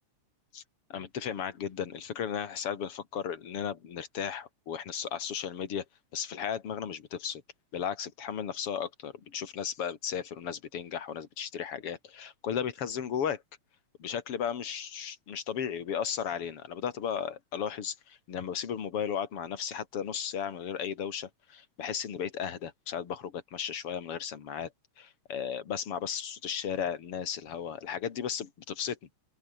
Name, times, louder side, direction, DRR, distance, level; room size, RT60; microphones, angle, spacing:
voice 1, 0.9-5.8 6.1-7.4 7.7-13.4 14.0-24.7 25.0-29.0, left 8 dB, 50° left, 3.0 m, -35 dB
open air
omnidirectional pair, 3.4 m